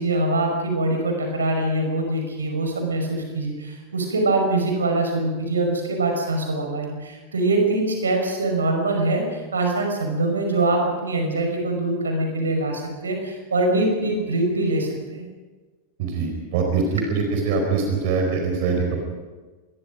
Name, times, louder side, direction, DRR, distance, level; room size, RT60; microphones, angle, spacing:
voice 1, 0.0-15.3, right 2 dB, 70° right, 3 dB, 5.4 m, -23 dB
voice 2, 16.0-16.8 17.1-19.0, right 5 dB, 50° right, 2 dB, 4.6 m, -23 dB
26.5 x 21.5 x 5.2 m, 1.3 s
figure-of-eight pair, 90°, 0 cm